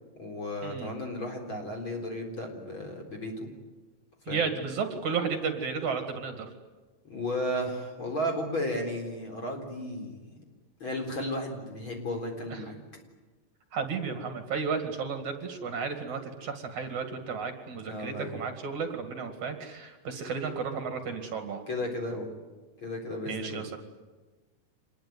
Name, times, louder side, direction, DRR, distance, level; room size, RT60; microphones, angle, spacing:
voice 1, 0.2-3.5 4.3-4.5 7.0-10.3 10.8-12.8 17.8-18.4 21.7-22.3 22.8-23.6, left 1 dB, 35° left, 2 dB, 4.7 m, -34 dB
voice 2, 4.3-6.5 12.5-12.6 13.7-21.6 23.3-23.8, right 5 dB, 55° right, 6 dB, 3.3 m, -33 dB
26.5 x 21.0 x 9.5 m, 1.3 s
omnidirectional pair, 4.1 m